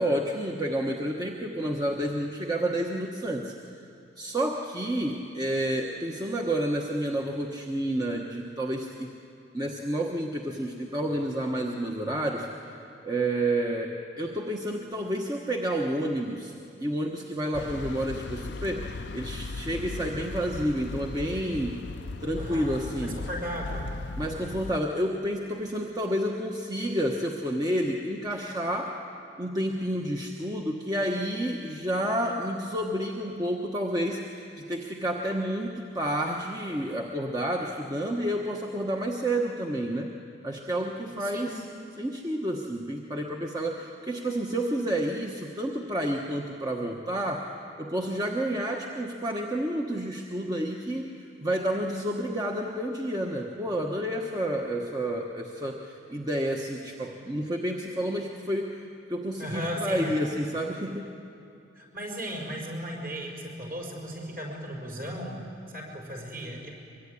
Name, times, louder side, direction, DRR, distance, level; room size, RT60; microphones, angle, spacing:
voice 1, 0.0-3.5 4.2-9.2 9.5-12.5 12.8-21.8 22.2-23.2 24.2-28.9 29.4-40.2 40.4-41.6 42.0-47.5 47.8-58.8 59.1-61.1, right 1 dB, 20° right, 0 dB, 1.2 m, -30 dB
sound 1, 17.5-24.8, left 3 dB, 65° left, 0.6 m, -37 dB
voice 2, 22.4-23.9 41.2-41.6 59.4-60.2 61.7-65.4 65.7-66.7, equal, 50° right, -1 dB, 5.6 m, -36 dB
23.5 x 23.0 x 9.8 m, 2.6 s
head